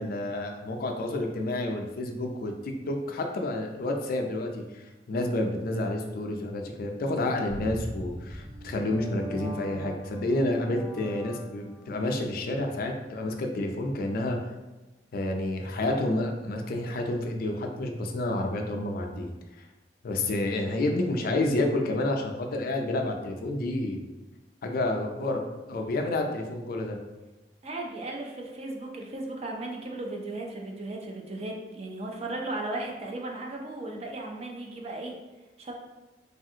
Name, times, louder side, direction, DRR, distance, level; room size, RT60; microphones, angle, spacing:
voice 1, 0.0-14.5 15.1-19.3 19.6-19.7 20.0-24.0 24.6-27.0, left 1 dB, 55° left, 3 dB, 0.4 m, -29 dB
sound 1, 7.5-11.9, equal, 20° right, 1.0 m, -41 dB
voice 2, 27.6-35.2 35.6-35.7, right 2 dB, 35° right, 1 dB, 0.5 m, -36 dB
3.3 x 2.4 x 2.7 m, 1.1 s
head